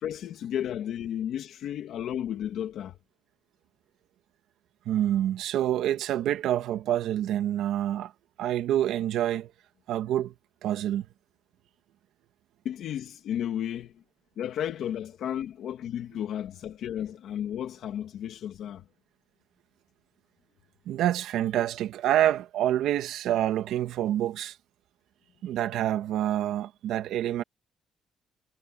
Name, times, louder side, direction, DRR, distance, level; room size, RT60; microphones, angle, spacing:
voice 1, 0.0-3.0 12.6-13.9 14.4-18.8, left 10 dB, 55° left, 2.6 m, -33 dB
voice 2, 4.9-8.1 8.4-9.5 9.9-10.3 10.6-11.1 20.9-24.6 25.4-27.4, right 12 dB, 70° right, 1.8 m, -27 dB
cardioid pair, 165°, 0 cm